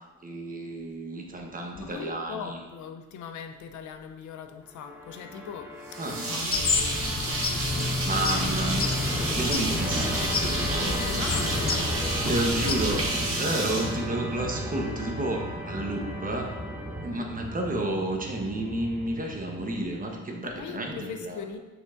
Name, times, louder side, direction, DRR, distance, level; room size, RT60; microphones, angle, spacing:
voice 1, 0.2-2.6 6.0-6.2 8.0-9.1 9.3-11.4 12.2-13.0 13.4-16.5 17.0-21.4, right 1 dB, 30° right, 1 dB, 1.0 m, -31 dB
voice 2, 1.8-6.0 6.3-8.0 8.4-9.3 10.8-11.8 12.2-12.8 20.4-21.6, left 6 dB, 75° left, 6 dB, 0.7 m, -40 dB
Musical instrument, 4.7-20.1, equal, 5° right, 1.0 m, -34 dB
sound 1, 5.9-14.7, right 2 dB, 45° right, 1.7 m, -31 dB
sound 2, 6.5-13.1, left 4 dB, 30° left, 0.6 m, -30 dB
6.3 x 6.1 x 2.5 m, 1.2 s
cardioid pair, 90°, 30 cm